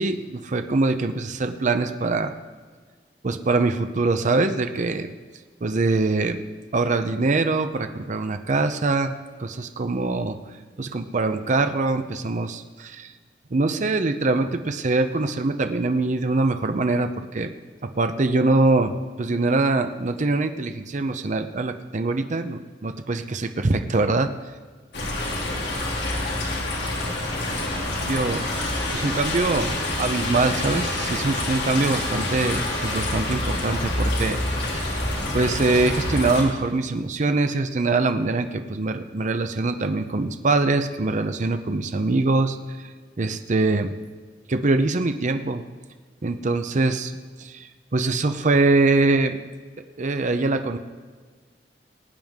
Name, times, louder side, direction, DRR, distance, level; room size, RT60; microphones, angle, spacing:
voice 1, 0.0-2.3 3.2-5.2 5.6-6.4 6.7-10.4 10.8-13.1 13.5-17.5 17.8-18.9 19.2-24.3 28.1-42.6 43.2-43.9 44.5-45.6 46.2-47.1 47.4-49.4 50.0-50.8, right 3 dB, 45° right, 8 dB, 0.6 m, -23 dB
rain traffic thunder, 24.9-36.4, left 1 dB, 70° left, 2.8 m, -27 dB
19.5 x 9.1 x 3.6 m, 1.5 s
head